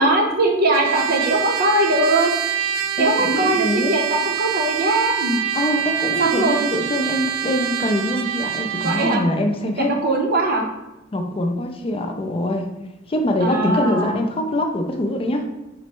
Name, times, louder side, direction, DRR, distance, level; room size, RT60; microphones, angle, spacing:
voice 1, 0.0-2.3 3.0-5.4 6.2-6.7 8.8-9.2 9.6-10.6 13.4-14.2, right 2 dB, 50° right, 2 dB, 0.7 m, -20 dB
Trumpet, 0.7-9.2, right 9 dB, 85° right, 0.3 m, -25 dB
voice 2, 3.0-3.9 5.5-9.9 11.1-12.7 13.1-15.4, left 1 dB, 30° left, 3 dB, 0.4 m, -23 dB
4.1 x 2.1 x 4.5 m, 0.99 s
head